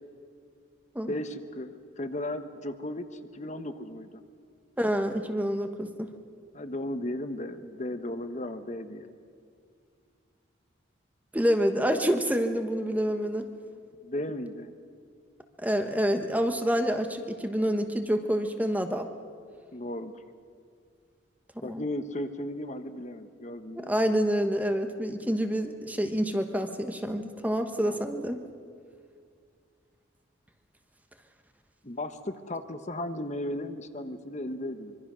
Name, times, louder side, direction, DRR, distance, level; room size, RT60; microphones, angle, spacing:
voice 1, 1.1-3.1 3.3-4.1 6.5-9.1 14.0-14.7 19.7-20.2 21.6-23.9 27.8-28.1 31.8-34.9, left 1 dB, 35° left, 8 dB, 1.0 m, -35 dB
voice 2, 4.8-6.1 11.3-13.5 15.6-19.1 21.6-21.8 23.7-28.4, equal, 10° right, 6 dB, 1.1 m, -27 dB
25.0 x 24.0 x 6.2 m, 2.2 s
head